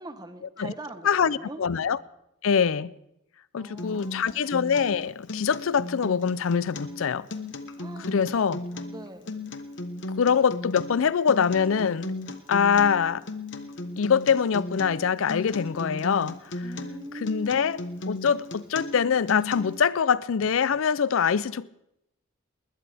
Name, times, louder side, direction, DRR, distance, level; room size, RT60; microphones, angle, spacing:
voice 1, 0.0-1.6 3.5-4.6 7.8-8.2 8.5-9.3 16.6-17.8, right 2 dB, 20° right, 1.0 m, -43 dB
voice 2, 1.0-2.0 2.4-2.9 3.5-7.3 8.0-8.6 10.2-12.1 12.5-13.2 14.0-16.7 17.1-17.8 18.1-21.7, left 6 dB, 80° left, 0.5 m, -24 dB
Acoustic guitar, 3.8-19.8, left 2 dB, 60° left, 1.2 m, -36 dB
20.5 x 20.0 x 3.5 m
head